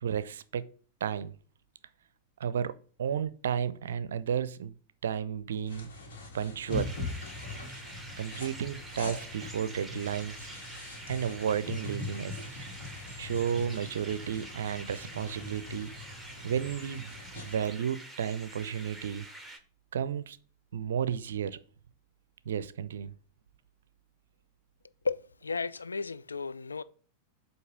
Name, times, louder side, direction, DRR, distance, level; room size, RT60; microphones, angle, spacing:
voice 1, 0.0-0.7 1.0-1.3 2.4-4.7 5.0-5.9 6.3-7.0 8.2-10.5 11.1-12.7 13.2-15.9 16.4-17.1 17.4-19.3 19.9-20.4 20.7-21.6 22.5-23.1, right 8 dB, 65° right, 0.5 m, -33 dB
sound 1, 5.7-17.6, left 3 dB, 55° left, 1.9 m, -42 dB
sound 2, 6.7-19.6, right 2 dB, ahead, 1.0 m, -47 dB
voice 2, 25.0-26.8, left 4 dB, 75° left, 0.3 m, -34 dB
7.8 x 2.8 x 6.0 m
figure-of-eight pair, 90°, 0 cm